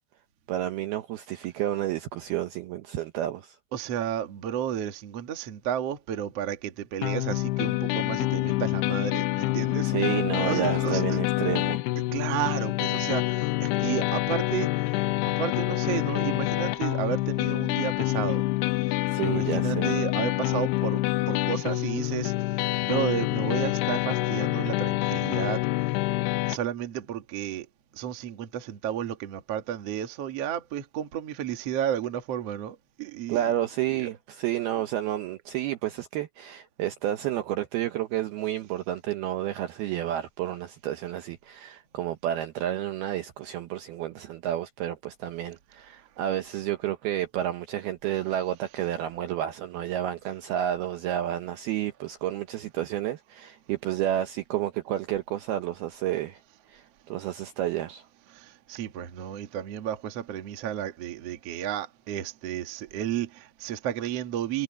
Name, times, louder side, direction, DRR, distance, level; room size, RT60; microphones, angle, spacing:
voice 1, 0.5-3.6 9.8-11.8 19.1-19.9 33.3-56.4 56.7-58.1, right 12 dB, 75° right, 2.4 m, -30 dB
voice 2, 3.7-9.9 10.3-11.2 12.1-14.7 15.2-18.4 19.2-22.3 22.8-25.6 26.5-27.7 27.9-33.5 33.9-34.1 58.3-64.6, right 10 dB, 60° right, 1.7 m, -32 dB
sound 1, 7.0-26.6, left 19 dB, 85° left, 2.4 m, -27 dB
omnidirectional pair, 5.4 m